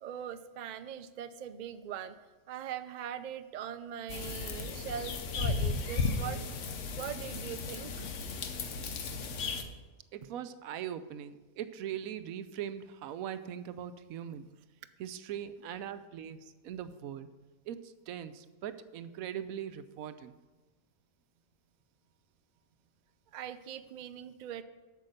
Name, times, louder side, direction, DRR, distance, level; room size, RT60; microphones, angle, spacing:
voice 1, 0.0-2.1 2.5-8.1 23.3-24.6, right 9 dB, 70° right, 10 dB, 0.4 m, -41 dB
sound 1, 4.1-9.6, left 4 dB, 65° left, 1.2 m, -35 dB
voice 2, 10.1-14.5 15.0-17.3 17.7-20.4, right 10 dB, 90° right, 12 dB, 1.0 m, -41 dB
8.3 x 6.5 x 6.6 m, 1.2 s
omnidirectional pair, 1.4 m